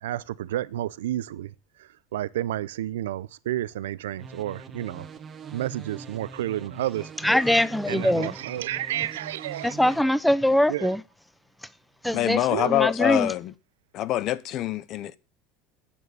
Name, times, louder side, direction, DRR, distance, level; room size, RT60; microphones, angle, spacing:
voice 1, 0.0-5.1 5.5-7.4 7.9-9.7 10.7-11.0 12.5-12.8, right 13 dB, 90° right, 0.5 m, -31 dB
sound 1, 4.2-10.0, right 5 dB, 35° right, 1.5 m, -43 dB
voice 2, 7.2-8.3 9.6-11.0 12.0-12.4 12.7-13.3, left 1 dB, 5° left, 0.7 m, -22 dB
voice 3, 12.1-13.5 13.9-15.2, left 13 dB, 55° left, 0.7 m, -25 dB
8.8 x 6.8 x 6.3 m
supercardioid pair, 100°, 0 cm